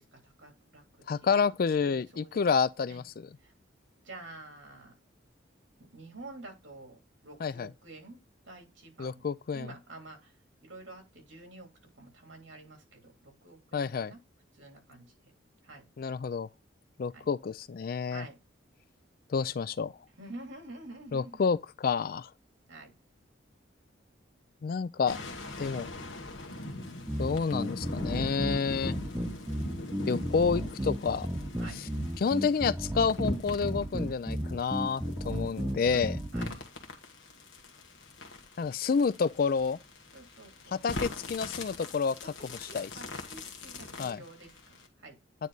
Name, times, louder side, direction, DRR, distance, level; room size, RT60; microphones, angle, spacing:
voice 1, 0.0-1.3 1.8-2.4 2.9-3.0 3.4-3.5 4.0-4.9 5.8-8.2 8.4-9.2 9.5-11.7 12.0-14.2 14.5-15.3 15.6-15.8 17.1-17.3 18.0-18.3 20.2-21.4 22.7-22.9 31.6-31.8 35.9-36.6 40.1-40.8 42.2-45.2, right 2 dB, 75° right, 3.0 m, -49 dB
voice 2, 1.1-3.3 7.4-7.7 9.0-9.7 13.7-14.1 16.0-16.5 17.0-18.2 19.3-19.9 21.1-22.3 24.6-25.2 25.6-25.9 27.2-28.9 30.1-31.3 32.2-36.2 38.6-39.8 40.7-42.3 42.6-42.9 44.0-44.2, left 5 dB, 50° left, 0.3 m, -29 dB
sound 1, 25.1-44.9, left 2 dB, 75° left, 1.4 m, -42 dB
sound 2, 27.1-36.5, equal, 10° right, 0.7 m, -34 dB
9.2 x 3.2 x 3.9 m
head